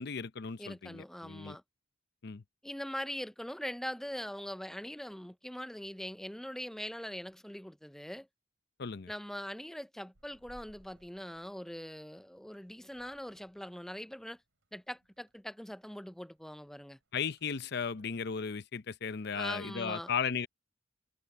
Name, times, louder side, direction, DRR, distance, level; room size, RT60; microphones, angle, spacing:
voice 1, 0.0-1.6 2.2-2.4 8.8-9.1 17.1-20.5, left 6 dB, 55° left, 0.7 m, -36 dB
voice 2, 0.6-1.6 2.6-8.3 9.1-14.4 14.7-17.0 19.3-20.1, equal, ahead, 0.4 m, -42 dB
sound 1, 10.1-18.1, right 1 dB, 85° right, 3.4 m, -66 dB
head